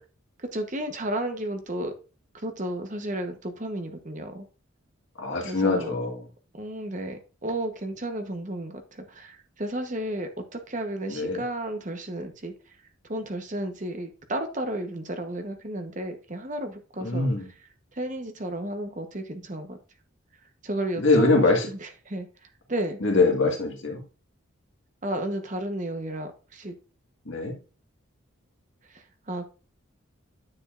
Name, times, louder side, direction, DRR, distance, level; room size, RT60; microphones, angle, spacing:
voice 1, 0.5-1.9 2.4-4.4 5.4-5.9 6.5-12.5 13.1-17.3 17.9-19.8 20.6-22.3 22.7-23.0 25.0-26.7 28.9-29.5, right 1 dB, 35° right, 1.0 m, -33 dB
voice 2, 5.2-6.2 11.1-11.4 17.0-17.5 21.0-21.7 23.0-24.0 27.3-27.5, left 3 dB, 65° left, 1.8 m, -23 dB
9.7 x 6.9 x 2.5 m
head